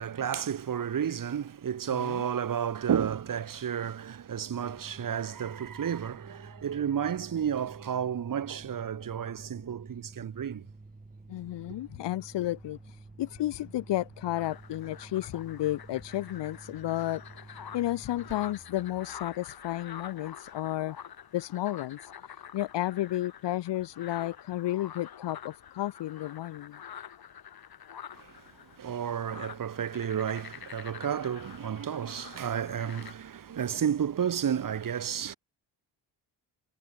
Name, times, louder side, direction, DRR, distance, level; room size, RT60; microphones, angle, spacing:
voice 1, 0.0-10.7 28.1-28.3 28.8-35.3, right 8 dB, 50° right, 1.8 m, -32 dB
voice 2, 1.9-2.2 11.3-21.0 21.3-26.8, left 14 dB, 75° left, 1.2 m, -32 dB
sound 1, 4.5-20.9, right 3 dB, 20° right, 3.8 m, -51 dB
sound 2, 14.3-33.1, left 8 dB, 55° left, 3.8 m, -47 dB
cardioid pair, 80°, 43 cm